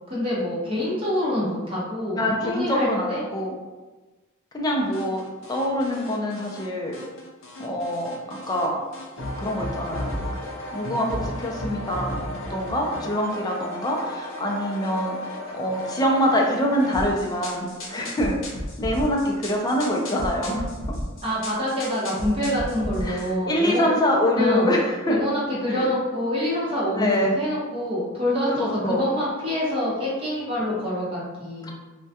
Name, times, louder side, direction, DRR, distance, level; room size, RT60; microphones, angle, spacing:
voice 1, 0.1-3.3 21.2-23.9 24.3-24.7 25.1-31.7, left 1 dB, 25° right, -7 dB, 0.8 m, -26 dB
voice 2, 2.2-3.5 4.5-5.2 5.5-7.0 7.6-8.8 9.4-10.2 10.7-12.1 12.5-15.1 15.5-18.4 18.8-20.7 23.0-25.2 25.7-25.9 26.9-27.3 28.6-29.0, equal, 20° left, -1 dB, 0.3 m, -25 dB
sound 1, 4.9-6.7 6.9-8.7 8.9-23.3, left 1 dB, 70° left, 0.5 m, -34 dB
2.2 x 2.1 x 2.7 m, 1.2 s
head